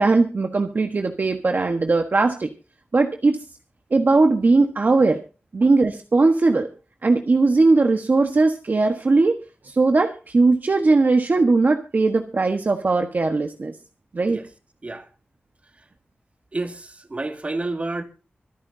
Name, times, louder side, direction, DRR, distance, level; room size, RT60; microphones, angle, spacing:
voice 1, 0.0-2.5 2.9-3.4 3.9-5.2 5.5-6.7 7.0-13.7 14.1-14.4, right 3 dB, 55° right, 1.3 m, -19 dB
voice 2, 16.5-18.0, right 2 dB, 35° right, 2.1 m, -29 dB
25.5 x 9.8 x 2.8 m
wide cardioid pair, 100°, 4 cm